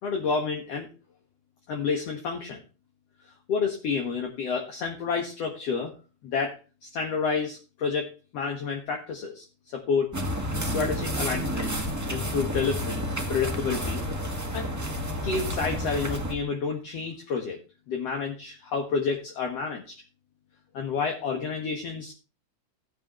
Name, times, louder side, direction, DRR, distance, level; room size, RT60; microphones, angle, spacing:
voice 1, 0.0-0.9 1.7-2.6 3.5-5.9 6.2-9.4 9.7-11.8 12.1-14.7 15.2-17.6 17.9-19.8 20.7-22.1, left 5 dB, 60° left, 1 dB, 2.5 m, -30 dB
sound 1, 10.1-16.3, equal, 15° right, 0.7 m, -30 dB
16.5 x 7.2 x 3.1 m, 0.31 s
omnidirectional pair, 3.4 m